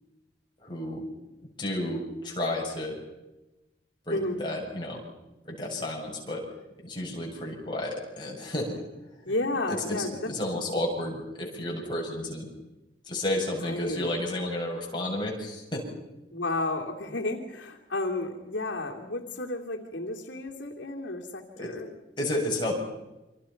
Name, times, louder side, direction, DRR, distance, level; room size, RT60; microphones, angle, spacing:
voice 1, 0.6-1.1 1.6-2.9 4.1-5.0 5.4-6.4 6.8-8.7 9.7-12.5 13.1-15.8 21.6-21.7 22.2-22.7, left 1 dB, 25° left, -2 dB, 8.0 m, -32 dB
voice 2, 9.2-10.3 13.6-14.1 16.3-21.9, left 2 dB, 80° left, 1 dB, 2.9 m, -32 dB
29.0 x 26.0 x 5.9 m, 1.0 s
head